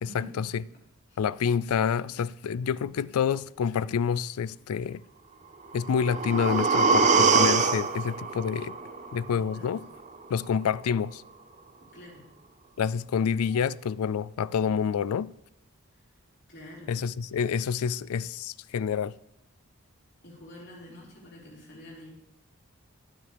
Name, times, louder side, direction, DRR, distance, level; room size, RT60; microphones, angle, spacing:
voice 1, 0.0-0.5 1.2-5.0 5.7-8.8 9.1-9.8 10.3-11.2 12.8-15.3 16.9-19.1, left 7 dB, 85° left, 0.3 m, -28 dB
sound 1, 5.7-9.7 10.1-10.2, right 4 dB, 35° right, 0.6 m, -24 dB
voice 2, 9.3-9.7 11.9-12.3 16.5-16.9 20.2-22.1, left 1 dB, 50° left, 3.9 m, -46 dB
21.0 x 7.0 x 3.4 m
head